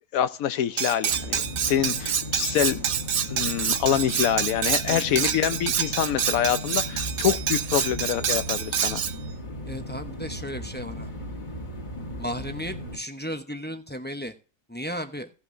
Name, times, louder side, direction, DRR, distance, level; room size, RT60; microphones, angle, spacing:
voice 1, 0.1-2.8 3.3-9.0, left 10 dB, 85° left, 1.2 m, -26 dB
Cutlery silverware, 0.8-9.2, right 8 dB, 60° right, 1.0 m, -27 dB
sound 1, 1.1-13.0, left 1 dB, 35° left, 1.6 m, -36 dB
voice 2, 4.9-5.3 9.7-11.1 12.2-14.3 14.7-15.3, equal, 10° left, 0.7 m, -35 dB
17.0 x 6.0 x 2.6 m
omnidirectional pair, 1.4 m